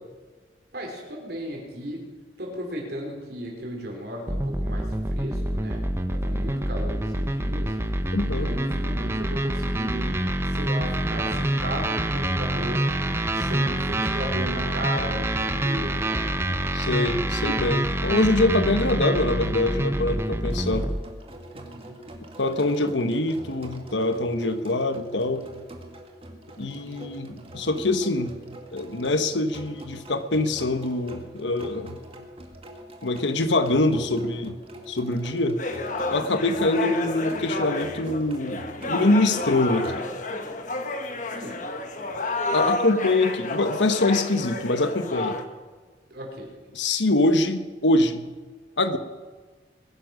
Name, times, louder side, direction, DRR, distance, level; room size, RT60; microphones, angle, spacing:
voice 1, 0.7-2.0 2.4-5.8 6.1-7.8 8.2-10.1 10.4-12.8 13.3-16.3 21.5-22.0 36.1-36.3 41.3-41.6 46.1-46.5, equal, 60° right, 0 dB, 4.6 m, -35 dB
sound 1, 4.3-21.0, right 1 dB, 15° right, 0.8 m, -26 dB
voice 2, 8.1-8.5 16.4-20.9 22.4-25.5 26.6-28.3 28.7-32.0 33.0-34.6 34.9-35.6 36.1-40.0 42.5-45.4 46.7-48.3 48.8-49.0, left 2 dB, 85° left, 9 dB, 1.3 m, -24 dB
sound 2, 20.5-40.0, right 1 dB, 30° right, 1.9 m, -43 dB
sound 3, 35.6-45.4, left 2 dB, 45° left, 1.3 m, -30 dB
22.0 x 10.5 x 6.2 m, 1.4 s
head